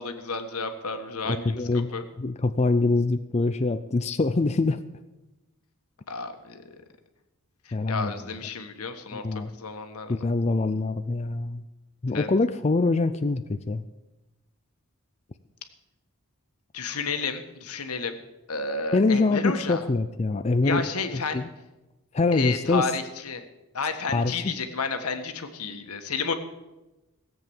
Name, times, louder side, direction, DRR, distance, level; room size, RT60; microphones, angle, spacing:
voice 1, 0.0-2.0 6.1-6.8 7.6-9.3 9.6-10.2 12.1-12.3 16.7-18.2 18.5-19.8 20.6-21.4 22.3-23.4 23.7-26.3, left 4 dB, 85° left, 7 dB, 1.5 m, -31 dB
voice 2, 1.2-1.9 2.2-4.8 7.7-8.1 9.1-9.5 10.1-11.6 12.0-13.8 18.9-21.5 22.1-22.9 24.1-24.5, left 3 dB, 30° left, 9 dB, 0.5 m, -24 dB
16.5 x 7.9 x 7.1 m, 1.1 s
head